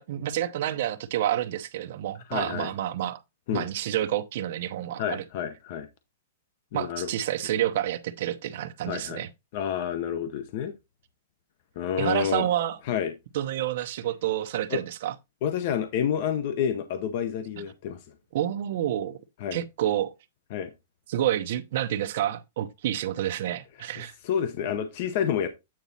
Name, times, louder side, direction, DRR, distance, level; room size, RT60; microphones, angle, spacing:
voice 1, 0.0-3.2 3.5-5.2 6.7-9.3 12.0-12.8 13.3-15.1 17.6-17.7 18.3-19.2 19.5-20.1 21.1-24.1, right 12 dB, 45° right, 0.8 m, -29 dB
voice 2, 2.3-2.7 3.5-3.7 5.0-5.9 6.7-7.1 8.9-9.2 9.5-10.7 11.8-12.5 12.9-13.1 14.7-14.8 15.4-18.0 19.4-19.6 20.5-20.7 23.8-23.9 24.2-25.5, left 8 dB, 35° left, 0.7 m, -29 dB
8.8 x 4.1 x 4.1 m
supercardioid pair, 180°, 0 cm